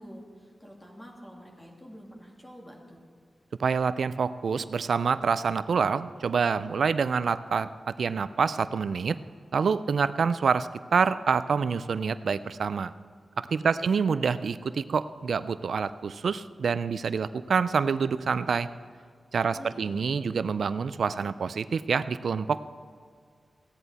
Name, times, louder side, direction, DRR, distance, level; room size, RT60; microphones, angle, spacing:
voice 1, 0.0-3.0 13.8-14.0 19.5-20.1, equal, 15° left, -1 dB, 2.3 m, -47 dB
voice 2, 3.6-7.7 8.0-9.2 9.5-12.9 13.4-18.7 19.3-22.6, right 5 dB, 80° right, 14 dB, 0.3 m, -27 dB
15.5 x 10.0 x 4.1 m, 2.1 s
wide cardioid pair, 95°, 0 cm